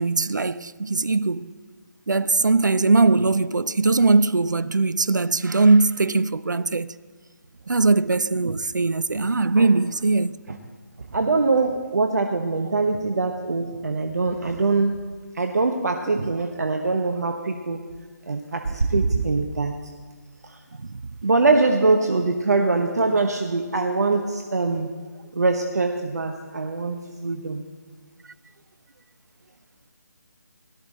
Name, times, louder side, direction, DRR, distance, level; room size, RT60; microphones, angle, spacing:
voice 1, 0.0-1.5 2.1-6.9 7.7-10.3 16.1-16.3, right 3 dB, 75° right, 0.5 m, -20 dB
voice 2, 11.1-14.9 15.4-17.8 18.3-19.7 21.2-24.9 25.4-27.6, right 3 dB, 60° right, 1.0 m, -23 dB
17.5 x 12.5 x 4.2 m
figure-of-eight pair, 150°, 10 cm